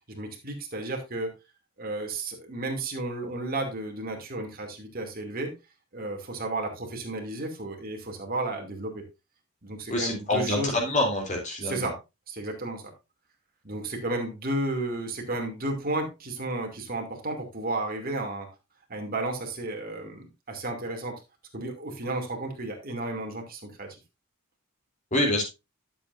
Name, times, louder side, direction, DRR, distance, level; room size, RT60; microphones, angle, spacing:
voice 1, 0.1-1.3 1.8-5.5 5.9-9.0 9.6-10.8 11.6-11.9 12.3-12.8 13.6-18.5 18.9-21.1 21.5-23.9, right 2 dB, 45° right, 2 dB, 2.6 m, -33 dB
voice 2, 9.9-11.9 25.1-25.4, left 1 dB, 35° left, 0 dB, 3.3 m, -26 dB
12.5 x 7.6 x 2.6 m, 0.24 s
head